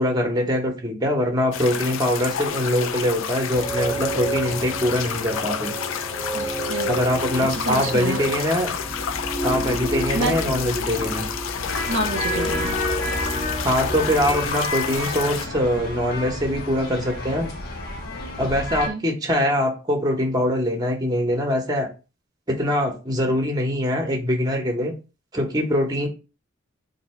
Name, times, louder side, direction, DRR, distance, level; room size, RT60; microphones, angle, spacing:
voice 1, 0.0-5.7 6.9-8.7 9.4-11.3 13.6-17.5 18.4-21.9 22.5-24.9 25.3-26.1, equal, 20° right, 2 dB, 0.8 m, -23 dB
sound 1, 1.5-15.5, left 8 dB, 65° left, 0.4 m, -30 dB
sound 2, 3.5-14.5, right 1 dB, 10° left, 0.6 m, -30 dB
voice 2, 6.3-6.9 7.4-8.2 10.1-10.3 11.9-12.8 18.8-19.0, right 2 dB, 60° right, 4 dB, 0.6 m, -28 dB
sound 3, 11.5-18.9, left 2 dB, 50° left, 0.9 m, -31 dB
2.6 x 2.6 x 4.2 m, 0.31 s
head